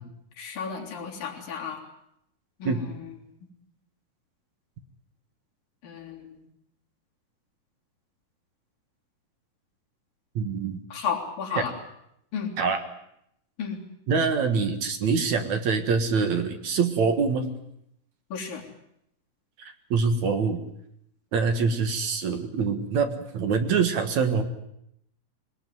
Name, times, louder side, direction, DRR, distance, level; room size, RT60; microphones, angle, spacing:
voice 1, 0.4-1.8 2.6-2.9 5.8-6.4 10.9-11.7 12.3-12.5 13.6-13.8 18.3-18.6, left 6 dB, 75° left, 0 dB, 5.2 m, -33 dB
voice 2, 10.4-10.8 11.6-11.7 12.6-12.8 14.1-17.5 19.6-20.6 21.3-24.4, right 5 dB, 60° right, 7 dB, 2.7 m, -25 dB
22.5 x 19.5 x 9.4 m, 0.77 s
omnidirectional pair, 4.1 m